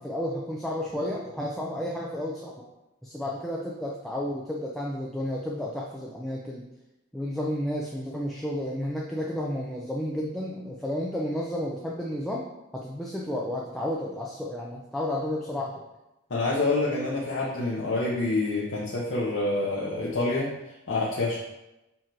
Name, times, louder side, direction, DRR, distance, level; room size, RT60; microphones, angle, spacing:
voice 1, 0.0-2.6 3.0-6.6 7.1-12.4 12.7-15.8, left 1 dB, ahead, -4 dB, 0.5 m, -32 dB
voice 2, 16.3-20.5 20.9-21.4, left 2 dB, 80° left, -5 dB, 0.9 m, -27 dB
7.3 x 3.0 x 4.5 m, 0.95 s
head